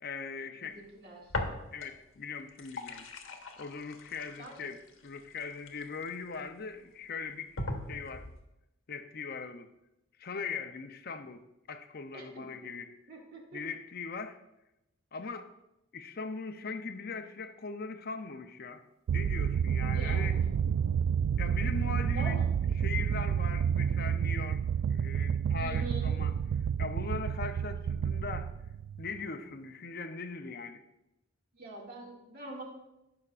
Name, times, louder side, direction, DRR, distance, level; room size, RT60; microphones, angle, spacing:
voice 1, 0.0-0.8 1.7-3.1 3.6-7.6 7.9-8.3 8.9-9.7 10.2-12.9 13.5-14.4 15.1-15.5 15.9-18.8 19.1-20.4 21.4-22.4 22.8-24.6 24.9-26.3 26.8-28.5 29.0-30.8, left 4 dB, 50° left, 8 dB, 0.6 m, -40 dB
voice 2, 0.6-1.3 4.4-4.7 12.1-12.5 13.1-13.6 19.9-20.6 22.1-22.4 25.5-26.1 31.5-32.6, right 2 dB, 50° right, -2 dB, 2.2 m, -44 dB
sound 1, 1.3-2.1 2.4-6.4 6.9-7.0 7.6-8.5, left 2 dB, 85° left, 1.2 m, -39 dB
sound 2, 19.1-29.2, right 8 dB, 90° right, 0.3 m, -30 dB
17.5 x 5.9 x 2.5 m, 0.92 s
head